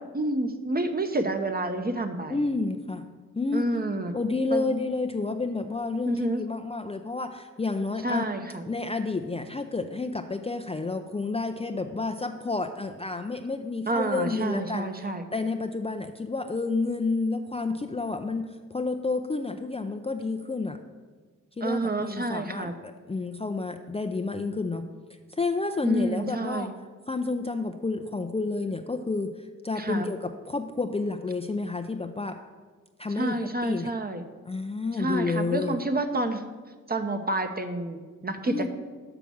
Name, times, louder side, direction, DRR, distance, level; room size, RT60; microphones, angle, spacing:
voice 1, 0.1-2.4 3.5-4.1 4.5-4.7 6.1-6.4 8.0-8.7 13.9-15.2 21.6-22.7 25.8-26.7 29.8-30.1 33.1-34.2 35.0-36.4 36.9-38.7, right 2 dB, 25° right, 7 dB, 1.0 m, -29 dB
voice 2, 2.3-3.0 3.3-3.7 4.1-8.2 8.7-14.9 15.3-18.4 18.7-20.8 21.6-24.9 25.3-26.7 27.1-32.3 33.0-33.4 33.6-33.9 34.5-35.8 38.5-38.7, left 3 dB, 15° left, 5 dB, 0.5 m, -30 dB
6.0 x 5.9 x 7.0 m, 1.4 s
supercardioid pair, 45°, 35 cm